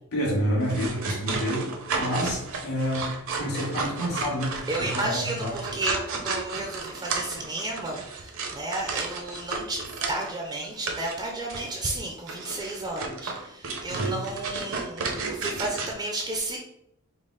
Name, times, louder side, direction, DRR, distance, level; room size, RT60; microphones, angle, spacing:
voice 1, 0.1-5.6 13.9-14.2, equal, 85° left, -5 dB, 1.4 m, -29 dB
sound 1, 0.6-10.4 10.9-11.2 11.5-11.7 12.3-15.9, right 4 dB, 65° right, 0.7 m, -33 dB
voice 2, 4.7-16.6, right 2 dB, 20° right, 1 dB, 0.4 m, -32 dB
5.1 x 2.0 x 3.9 m, 0.79 s
head